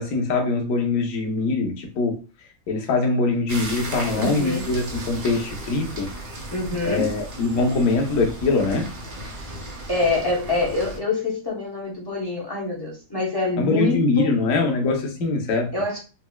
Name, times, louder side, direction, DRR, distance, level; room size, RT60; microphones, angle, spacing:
voice 1, 0.0-6.1 6.8-8.9 13.6-15.7, left 3 dB, 55° left, 1.0 m, -23 dB
sound 1, 3.5-11.0, right 1 dB, 55° right, 0.6 m, -35 dB
voice 2, 4.1-4.7 6.5-7.1 9.3-9.5 9.9-14.4 15.7-16.0, left 2 dB, 30° left, 0.4 m, -26 dB
4.2 x 2.5 x 2.2 m
omnidirectional pair, 2.0 m